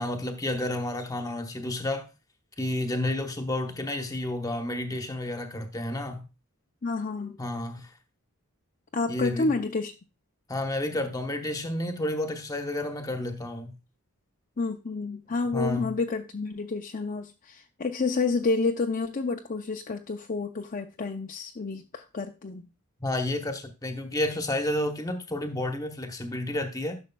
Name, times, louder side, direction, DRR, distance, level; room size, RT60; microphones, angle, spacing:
voice 1, 0.0-2.1 2.6-6.2 7.4-7.9 9.1-9.6 10.5-13.8 15.5-15.9 23.0-27.0, left 1 dB, 15° left, 1.0 m, -31 dB
voice 2, 6.8-7.4 8.9-9.9 14.6-22.6, left 3 dB, 40° left, 0.5 m, -29 dB
11.0 x 6.3 x 2.3 m
head